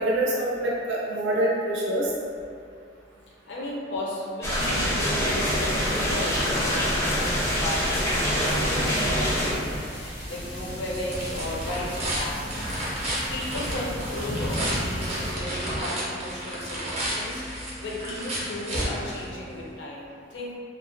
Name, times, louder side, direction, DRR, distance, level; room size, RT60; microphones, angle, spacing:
voice 1, 0.0-2.1, right 1 dB, 80° right, -5 dB, 0.5 m, -25 dB
voice 2, 3.5-12.7 12.9-20.6, left 1 dB, 65° left, -3 dB, 0.5 m, -35 dB
sound 1, 4.4-9.5, equal, 15° left, 0.4 m, -25 dB
sound 2, 5.4-15.3, equal, 85° left, 0.9 m, -36 dB
sound 3, 10.3-19.7, right 1 dB, 35° right, 0.5 m, -32 dB
2.4 x 2.1 x 2.5 m, 2.3 s
head